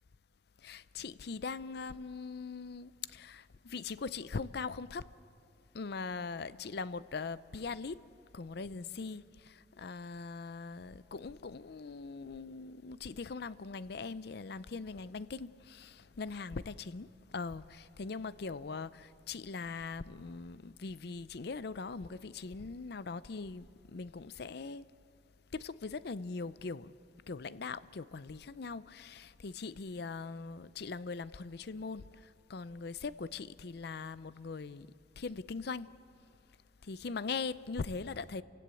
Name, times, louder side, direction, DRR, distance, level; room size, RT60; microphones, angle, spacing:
voice 1, 0.6-5.1 5.7-8.0 8.3-24.8 25.5-26.9 27.3-34.9 35.2-36.0 36.8-38.4, left 4 dB, 60° left, 0.5 m, -41 dB
29.5 x 16.5 x 8.4 m
head